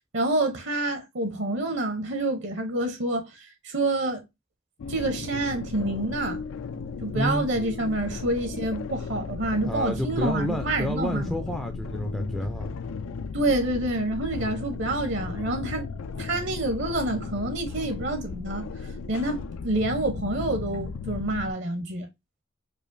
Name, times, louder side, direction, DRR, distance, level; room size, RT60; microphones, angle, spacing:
voice 1, 0.1-4.2 4.9-6.4 7.0-11.4 13.3-15.9 16.1-18.7 19.1-22.1, right 2 dB, 60° right, 0.7 m, -28 dB
sound 1, 4.8-21.5, left 4 dB, 90° left, 0.4 m, -36 dB
voice 2, 7.1-7.5 9.7-12.7, equal, ahead, 0.3 m, -29 dB
4.9 x 2.4 x 2.5 m
head